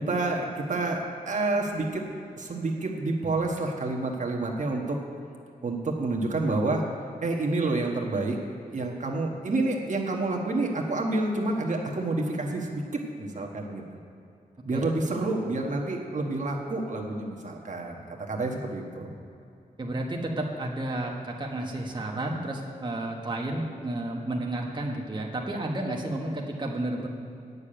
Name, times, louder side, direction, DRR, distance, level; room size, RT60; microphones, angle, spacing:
voice 1, 0.1-2.0 2.4-5.0 5.6-6.8 7.2-8.4 8.7-12.8 13.2-13.8 14.6-19.1, right 2 dB, 55° right, 0 dB, 1.3 m, -28 dB
voice 2, 19.8-27.1, right 1 dB, 30° right, -1 dB, 1.3 m, -31 dB
9.6 x 6.8 x 8.8 m, 2.6 s
wide cardioid pair, 95°, 15 cm